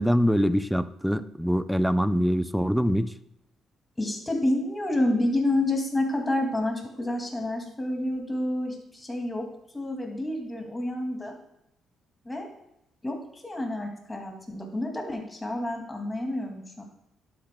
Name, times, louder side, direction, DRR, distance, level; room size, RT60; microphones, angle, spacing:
voice 1, 0.0-3.1, equal, ahead, 13 dB, 0.5 m, -24 dB
voice 2, 4.0-9.5 9.7-11.3 12.2-12.5 13.0-13.2 13.4-16.8, left 1 dB, 15° left, 1 dB, 2.3 m, -29 dB
11.5 x 8.5 x 2.2 m, 0.82 s
cardioid pair, 90°, 0 cm